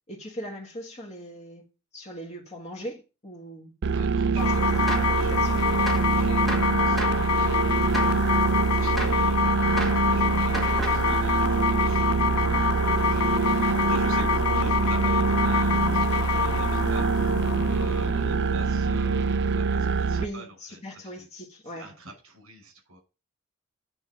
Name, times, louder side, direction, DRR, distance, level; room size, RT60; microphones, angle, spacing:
voice 1, 0.1-1.7 1.9-3.7 4.3-4.7 5.0-5.9 20.2-21.9, equal, 30° left, 1.8 m, -40 dB
sound 1, 3.8-20.2, right 5 dB, 55° right, 0.4 m, -25 dB
voice 2, 3.9-4.6 4.9-5.3 5.8-21.3 21.6-23.0, right 1 dB, 70° right, 5.6 m, -47 dB
sound 2, 4.4-19.3, left 7 dB, 85° left, 0.4 m, -27 dB
Gunshot gunfire, 4.9-5.2 5.9-6.2 6.5-7.3 7.9-8.2 9.0-9.3 9.8-10.1 10.5-11.1, right 1 dB, ahead, 2.0 m, -33 dB
9.4 x 3.9 x 6.0 m
head